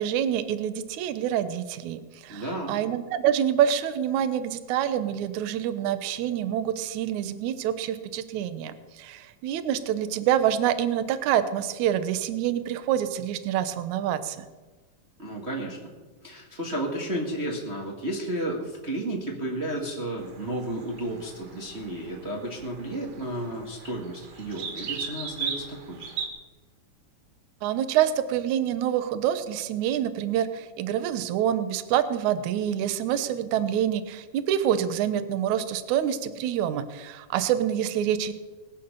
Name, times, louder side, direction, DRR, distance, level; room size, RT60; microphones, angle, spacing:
voice 1, 0.0-14.4 27.6-38.3, right 10 dB, 70° right, 11 dB, 1.9 m, -26 dB
voice 2, 2.3-2.8 15.2-15.9 16.2-26.1, right 1 dB, 30° right, -1 dB, 1.2 m, -32 dB
sound 1, 20.2-26.3, right 6 dB, 90° right, 4.0 m, -38 dB
20.5 x 8.8 x 6.8 m, 1.3 s
omnidirectional pair, 4.4 m